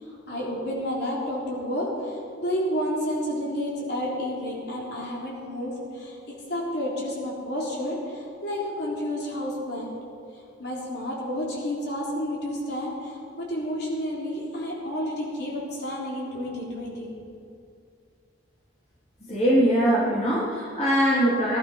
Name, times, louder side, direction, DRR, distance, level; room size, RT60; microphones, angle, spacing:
voice 1, 0.0-6.2 6.5-9.9 10.6-17.1, equal, 60° left, -4 dB, 3.9 m, -30 dB
voice 2, 19.3-21.6, equal, 35° left, -7 dB, 3.3 m, -22 dB
19.0 x 11.5 x 5.7 m, 2.4 s
head